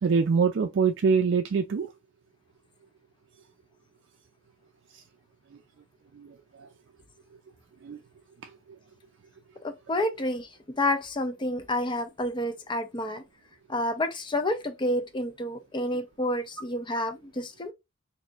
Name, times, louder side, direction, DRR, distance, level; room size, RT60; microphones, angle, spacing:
voice 1, 0.0-1.9 6.2-6.7 7.8-8.0 8.4-8.5, right 5 dB, 65° right, 0.4 m, -25 dB
voice 2, 9.6-13.2 13.7-17.7, left 1 dB, 25° left, 0.5 m, -29 dB
4.1 x 2.7 x 2.4 m
head